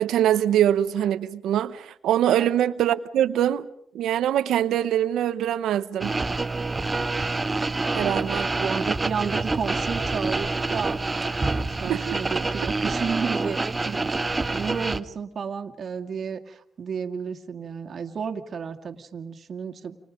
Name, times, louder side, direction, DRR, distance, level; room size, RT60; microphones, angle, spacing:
voice 1, 0.0-3.7 3.9-6.1 7.9-8.4 11.8-12.2, right 11 dB, 80° right, 0.9 m, -23 dB
sound 1, 6.0-15.0, right 3 dB, 20° right, 1.3 m, -27 dB
voice 2, 8.1-11.0 11.5-20.0, right 6 dB, 50° right, 2.1 m, -32 dB
30.0 x 27.0 x 5.2 m
cardioid pair, 90°, 0 cm